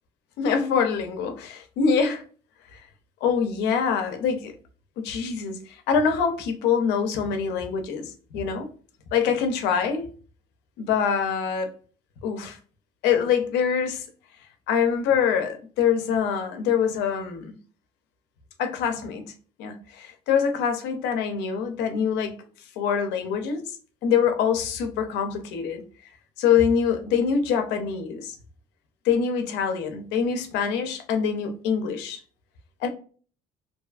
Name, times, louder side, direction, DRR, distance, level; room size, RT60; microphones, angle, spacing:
voice 1, 0.4-2.2 2.7-2.9 3.2-4.5 5.0-8.7 9.1-10.1 10.8-11.7 12.2-12.6 13.0-14.0 14.7-17.6 18.6-19.3 19.6-22.3 22.8-23.7 24.0-25.8 26.4-28.4 29.0-32.2 32.8-32.9, left 7 dB, 90° left, 0.6 m, -24 dB
2.6 x 2.3 x 2.4 m
cardioid pair, 110°, 17 cm